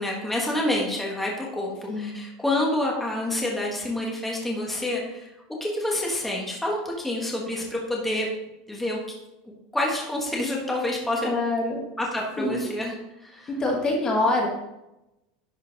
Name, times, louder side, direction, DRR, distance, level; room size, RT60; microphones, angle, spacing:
voice 1, 0.0-5.3 5.6-8.3 8.7-9.0 9.7-11.3 12.0-12.9 13.2-13.5, left 1 dB, 5° left, -2 dB, 1.4 m, -28 dB
voice 2, 11.2-11.8 12.4-12.6 13.5-14.5, left 2 dB, 20° left, 0 dB, 1.5 m, -25 dB
11.0 x 4.4 x 4.0 m, 0.91 s
supercardioid pair, 150°, 3 cm